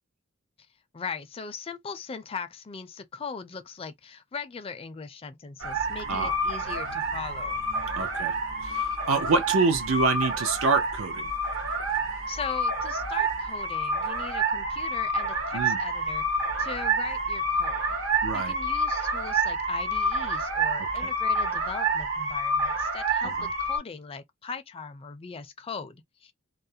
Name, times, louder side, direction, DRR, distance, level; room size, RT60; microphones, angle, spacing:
voice 1, 0.9-7.6 12.3-16.2 16.6-17.8 18.3-26.3, left 5 dB, 30° left, 0.4 m, -39 dB
sound 1, 5.6-23.8, right 2 dB, 65° right, 0.9 m, -28 dB
voice 2, 7.9-8.3 8.6-11.2 15.5-15.8 18.2-18.5 23.4-23.5, right 4 dB, 85° right, 0.6 m, -26 dB
2.4 x 2.0 x 2.7 m
head